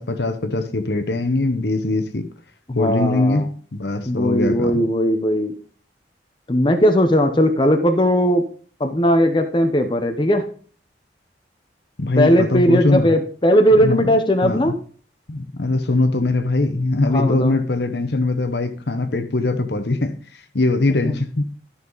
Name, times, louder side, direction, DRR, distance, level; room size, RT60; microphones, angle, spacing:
voice 1, 0.0-2.3 2.7-4.8 12.0-13.2 13.7-14.1 14.4-14.7 15.3-21.4, left 2 dB, 70° left, 0.9 m, -21 dB
voice 2, 2.7-3.5 4.1-5.6 6.5-8.4 8.8-10.5 12.1-14.8 17.1-17.6 21.0-21.2, equal, 25° left, 0.8 m, -18 dB
12.5 x 5.7 x 4.0 m
head